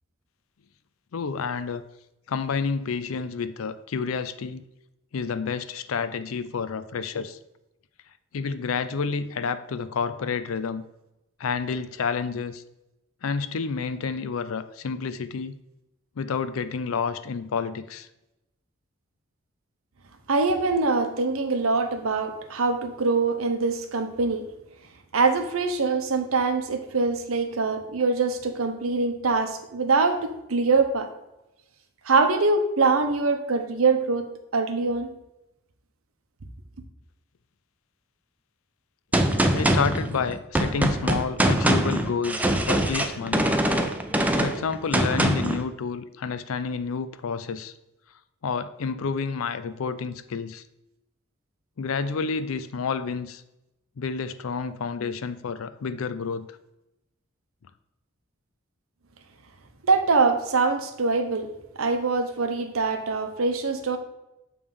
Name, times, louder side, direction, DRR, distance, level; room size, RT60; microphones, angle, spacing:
voice 1, 1.1-1.8 2.3-4.6 5.1-7.4 8.3-10.8 11.4-12.6 13.2-15.5 16.2-18.1 39.5-43.5 44.4-47.7 48.4-50.6 51.8-53.4 54.0-56.5, left 5 dB, 80° left, 13 dB, 0.5 m, -29 dB
voice 2, 20.3-24.4 25.1-31.1 32.0-35.1 59.8-61.5 61.8-64.0, right 4 dB, 85° right, 7 dB, 0.8 m, -23 dB
Gunshot gunfire, 39.1-45.6, right 1 dB, 5° right, 0.4 m, -23 dB
7.1 x 3.3 x 5.3 m, 0.90 s
head